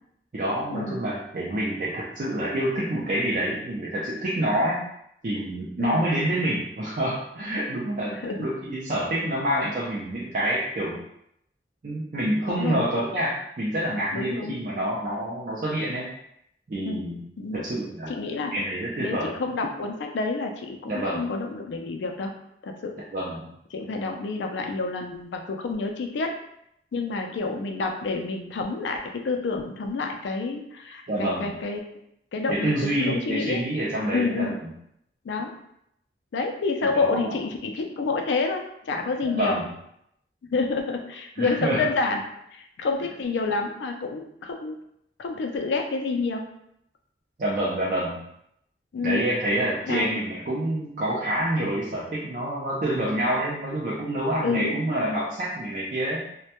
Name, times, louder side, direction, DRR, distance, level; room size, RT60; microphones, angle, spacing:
voice 1, 0.3-4.8 5.2-11.0 11.8-16.1 16.7-17.2 17.5-18.1 18.5-19.3 20.9-21.2 23.1-23.5 31.1-31.5 32.5-34.5 36.8-37.2 39.3-39.7 41.4-41.9 47.4-48.2 49.0-56.3, right 1 dB, 45° right, -6 dB, 0.4 m, -27 dB
voice 2, 8.1-8.5 12.5-12.8 14.1-14.6 16.9-17.1 17.4-17.6 18.1-18.5 19.0-22.3 22.6-23.0 23.7-26.3 26.9-31.8 32.3-33.6 34.1-34.6 35.2-35.5 36.3-39.6 40.4-42.2 42.5-44.8 45.2-46.5 48.9-49.3 49.9-50.1 54.4-54.8, left 3 dB, 85° left, 4 dB, 0.4 m, -28 dB
2.1 x 2.1 x 2.8 m, 0.76 s
head